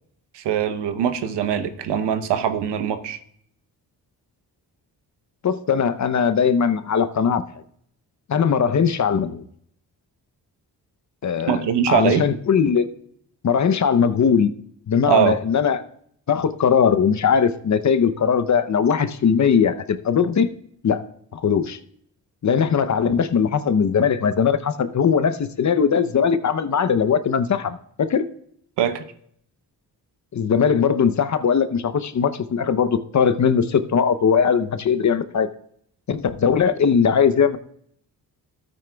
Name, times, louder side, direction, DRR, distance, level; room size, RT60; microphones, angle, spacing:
voice 1, 0.3-3.2 11.5-12.2 15.1-15.4 28.8-29.0, right 9 dB, 80° right, 9 dB, 0.9 m, -22 dB
voice 2, 5.4-7.4 8.3-9.4 11.2-12.9 13.4-14.5 14.9-15.8 16.3-20.5 20.8-21.0 21.3-21.8 22.4-28.2 30.3-35.5 36.1-37.6, left 7 dB, 45° left, 11 dB, 0.7 m, -20 dB
13.0 x 9.1 x 2.3 m, 0.67 s
cardioid pair, 60°, 41 cm